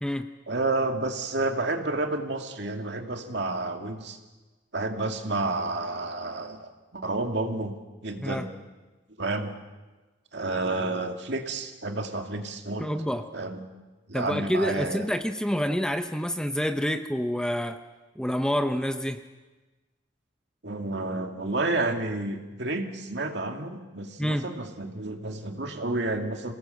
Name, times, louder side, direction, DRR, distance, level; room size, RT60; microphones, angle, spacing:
voice 1, 0.5-4.2 4.7-7.7 8.0-8.5 9.2-9.5 10.3-12.9 13.3-13.7 14.1-15.1 20.6-26.5, right 2 dB, 60° right, 4 dB, 2.2 m, -30 dB
voice 2, 12.8-13.3 14.1-17.8 18.2-19.2 24.2-24.5, equal, 5° left, 7 dB, 0.7 m, -28 dB
26.5 x 18.0 x 7.8 m, 1.2 s
head